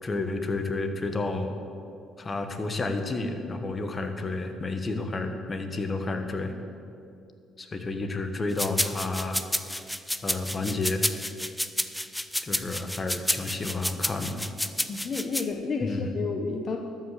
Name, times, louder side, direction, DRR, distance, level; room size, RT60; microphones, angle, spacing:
voice 1, 0.0-1.6 2.2-6.5 7.6-9.4 10.2-11.0 12.4-14.5 15.8-16.2, left 3 dB, 30° left, 7 dB, 1.2 m, -31 dB
sound 1, 8.6-15.4, equal, 5° left, 0.5 m, -30 dB
voice 2, 14.9-16.8, left 4 dB, 50° left, 3 dB, 0.9 m, -31 dB
12.5 x 5.8 x 7.6 m, 2.5 s
supercardioid pair, 75°, 0 cm